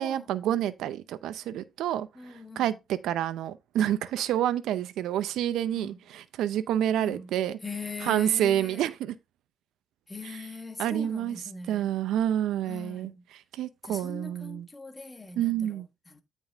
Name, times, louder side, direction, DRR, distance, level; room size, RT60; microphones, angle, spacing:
voice 1, 0.0-7.6 8.0-9.2 10.2-10.4 10.8-11.4 11.7-14.7 15.4-15.9, right 11 dB, 85° right, 0.7 m, -28 dB
voice 2, 2.1-2.7 5.7-6.0 7.0-7.3 7.6-8.9 10.1-11.9 12.7-13.2 13.8-16.2, left 4 dB, 20° left, 1.4 m, -41 dB
9.1 x 5.3 x 3.5 m
cardioid pair, 90°, 0 cm